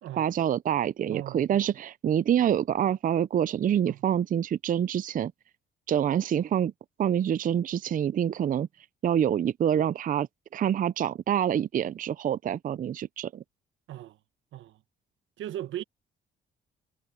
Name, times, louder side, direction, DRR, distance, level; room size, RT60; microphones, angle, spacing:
voice 1, 0.2-5.3 5.9-6.7 7.0-8.7 9.0-10.3 10.5-13.4, right 9 dB, 45° right, 0.5 m, -26 dB
voice 2, 1.1-1.7 3.9-4.0 13.9-14.2 14.5-14.8 15.4-15.8, right 12 dB, 80° right, 1.0 m, -38 dB
cardioid pair, 90°, 20 cm